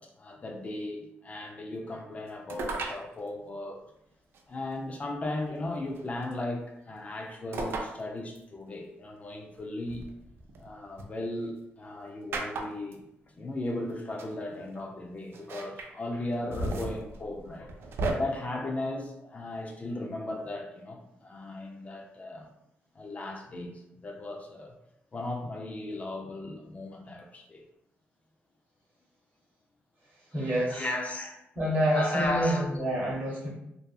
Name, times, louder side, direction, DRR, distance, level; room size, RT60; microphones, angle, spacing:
voice 1, 0.0-3.8 4.5-10.1 10.6-17.7 18.2-22.5 23.0-24.8 25.1-27.6 30.4-31.4 31.9-32.8, left 1 dB, 35° left, 2 dB, 0.4 m, -36 dB
more throwing, 2.5-3.0 4.3-4.4 5.9-6.3 7.5-7.9 8.4-8.5 9.9-11.0 12.3-12.9 13.9-14.0 14.2-14.3 15.3-15.9 16.3-18.1, right 2 dB, 65° right, 0.4 m, -34 dB
voice 2, 30.3-30.9 31.6-33.5, equal, 40° right, -4 dB, 1.0 m, -28 dB
2.6 x 2.2 x 2.3 m, 0.83 s
cardioid pair, 85°, 4 cm